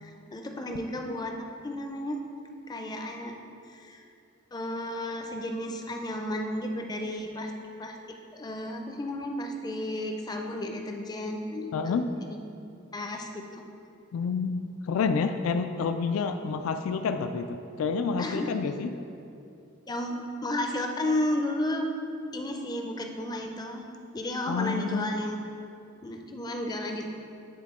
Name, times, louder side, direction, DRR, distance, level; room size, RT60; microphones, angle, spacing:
voice 1, 0.0-1.3 1.6-2.2 2.7-3.3 3.7-4.0 4.5-7.5 7.8-11.7 12.3-12.4 12.9-13.6 18.2-18.5 19.9-21.9 22.3-23.8 24.1-25.4 26.0-27.1, left 1 dB, 20° left, 3 dB, 0.4 m, -33 dB
voice 2, 11.7-12.1 14.1-19.0 24.5-25.2, left 5 dB, 85° left, 8 dB, 0.3 m, -29 dB
9.4 x 3.6 x 3.6 m, 2.6 s
head